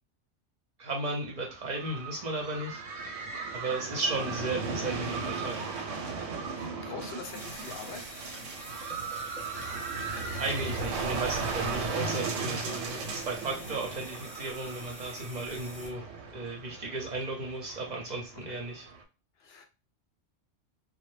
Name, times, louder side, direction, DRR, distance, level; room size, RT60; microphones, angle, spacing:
voice 1, 0.8-3.3 3.5-5.6 10.4-18.9, right 2 dB, 45° right, -1 dB, 0.7 m, -35 dB
sound 1, 1.4-19.0, right 4 dB, 85° right, 0.9 m, -37 dB
voice 2, 6.5-8.1 18.5-18.6 19.4-19.6, left 6 dB, 65° left, 5 dB, 0.7 m, -44 dB
sound 2, 7.2-15.9, equal, ahead, 0.8 m, -47 dB
2.1 x 2.1 x 3.1 m, 0.30 s
omnidirectional pair, 1.2 m